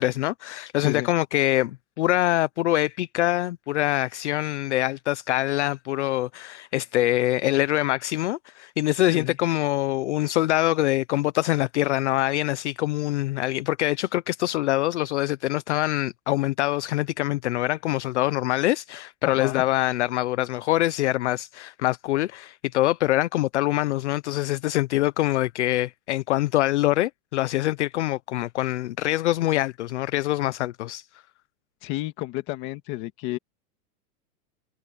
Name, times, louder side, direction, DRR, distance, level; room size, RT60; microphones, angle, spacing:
voice 1, 0.0-31.1, left 15 dB, 50° left, 0.6 m, -24 dB
voice 2, 0.8-1.1 9.1-9.4 19.2-19.6 31.8-33.4, left 17 dB, 25° left, 1.8 m, -31 dB
supercardioid pair, 180°, 46 cm